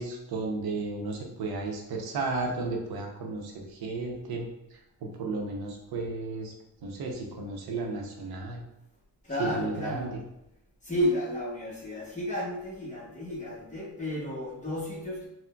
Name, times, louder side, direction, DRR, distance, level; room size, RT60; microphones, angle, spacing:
voice 1, 0.0-4.5 5.0-6.5 6.8-8.6 9.4-10.2, right 3 dB, 70° right, 1 dB, 0.7 m, -33 dB
voice 2, 9.2-10.2 10.8-15.3, left 1 dB, 20° left, -4 dB, 0.8 m, -32 dB
3.7 x 2.1 x 2.2 m, 0.84 s
cardioid pair, 105°, 39 cm